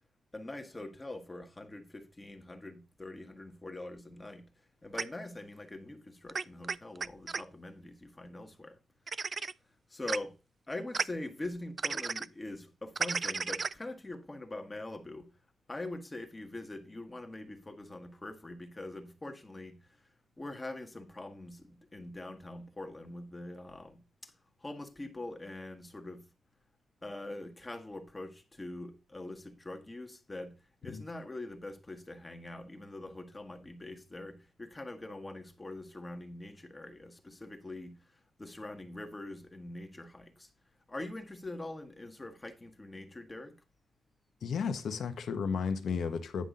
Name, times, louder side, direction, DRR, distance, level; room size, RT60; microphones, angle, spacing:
voice 1, 0.3-4.5 4.8-8.8 9.9-10.3 10.7-15.3 15.7-19.8 20.4-24.3 24.6-26.2 27.0-30.6 30.8-38.0 38.4-40.5 40.9-43.6, left 2 dB, 15° left, 1.4 m, -43 dB
sound 1, 5.0-5.1 6.3-7.4 9.1-9.5 10.1-10.2 10.9-11.0 11.8-12.3 13.0-13.7, right 4 dB, 35° right, 0.3 m, -33 dB
voice 2, 44.4-46.5, left 6 dB, 70° left, 1.2 m, -33 dB
10.0 x 5.9 x 3.8 m
wide cardioid pair, 145°, 0 cm